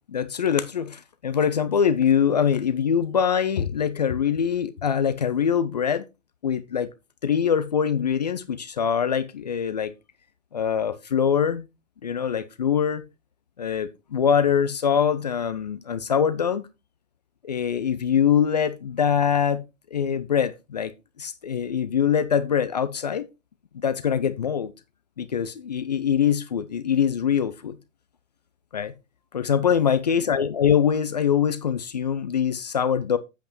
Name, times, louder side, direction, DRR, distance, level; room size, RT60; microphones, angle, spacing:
voice 1, 0.1-6.0 6.4-6.9 7.2-9.9 10.5-11.7 12.0-13.0 13.6-16.7 17.4-19.6 19.9-20.9 21.2-23.3 23.7-24.7 25.2-27.8 28.7-28.9 29.3-33.2, left 7 dB, 35° left, 0.5 m, -23 dB
8.3 x 8.0 x 3.1 m
figure-of-eight pair, 130°, 39 cm